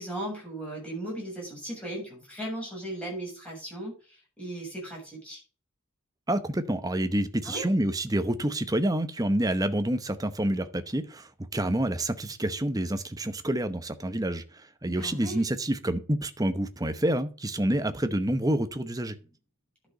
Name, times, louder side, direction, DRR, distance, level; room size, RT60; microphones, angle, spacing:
voice 1, 0.0-5.4 7.4-7.7 15.0-15.4, right 1 dB, 5° left, 7.2 m, -37 dB
voice 2, 6.3-19.2, right 1 dB, 15° right, 0.9 m, -28 dB
11.0 x 6.4 x 5.3 m
head